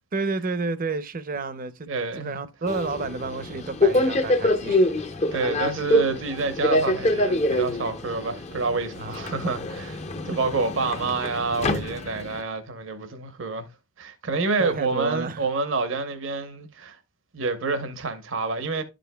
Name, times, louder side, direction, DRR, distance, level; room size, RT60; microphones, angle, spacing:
voice 1, 0.1-1.9 2.2-4.9 5.3-5.4 9.0-9.5 10.3-10.4 14.6-15.5, right 3 dB, 45° right, 0.6 m, -31 dB
voice 2, 1.9-2.4 5.3-13.7 14.0-17.0 17.3-18.8, right 3 dB, 70° right, 0.9 m, -28 dB
Subway metro underground, 2.7-12.4, left 1 dB, 35° left, 0.6 m, -25 dB
12.0 x 5.1 x 2.2 m
head